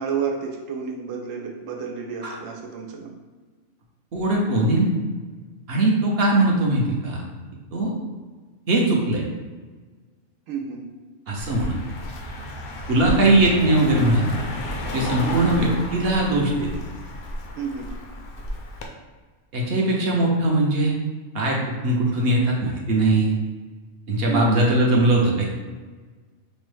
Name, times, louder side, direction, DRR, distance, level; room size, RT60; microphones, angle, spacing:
voice 1, 0.0-3.2 10.5-10.8 15.2-15.5 17.6-17.9 24.3-24.5, right 6 dB, 85° right, 0 dB, 1.0 m, -30 dB
voice 2, 4.1-4.9 5.7-7.2 7.7-7.9 8.7-9.2 11.3-11.7 12.9-14.2 14.9-16.7 19.5-20.9 21.3-21.6 21.8-23.3 24.1-25.4, right 2 dB, 55° right, -2 dB, 0.8 m, -20 dB
Car passing by, 11.4-18.9, left 1 dB, 60° left, 0.6 m, -32 dB
5.2 x 2.0 x 3.2 m, 1.4 s
omnidirectional pair, 1.3 m